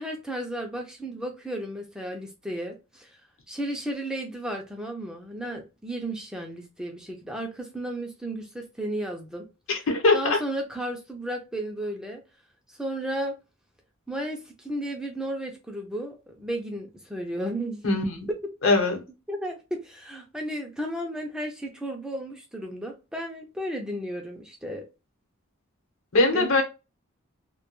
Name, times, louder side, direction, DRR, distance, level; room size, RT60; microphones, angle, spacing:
voice 1, 0.0-3.2 3.5-9.5 10.1-12.2 12.7-13.4 14.1-17.8 19.3-24.8 26.3-26.5, right 1 dB, 5° right, 0.3 m, -33 dB
voice 2, 9.7-10.4 17.8-18.3 18.6-19.0 26.1-26.6, left 2 dB, 70° left, 0.8 m, -21 dB
2.2 x 2.2 x 2.9 m
head